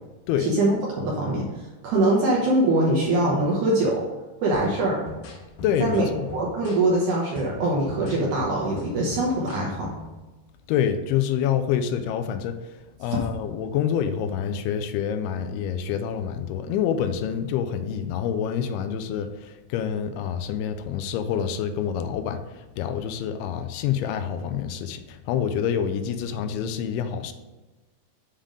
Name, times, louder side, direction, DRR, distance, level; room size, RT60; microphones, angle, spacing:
voice 1, 0.4-0.7 1.0-1.5 1.8-4.0 4.4-5.0 5.8-9.9, right 2 dB, 70° right, -3 dB, 1.9 m, -23 dB
sound 1, 4.5-10.2, left 2 dB, 70° left, 2.3 m, -40 dB
voice 2, 5.6-6.3 10.7-12.7 13.0-27.3, left 8 dB, 85° left, 8 dB, 2.5 m, -27 dB
7.4 x 3.4 x 5.0 m, 1.2 s
omnidirectional pair, 4.5 m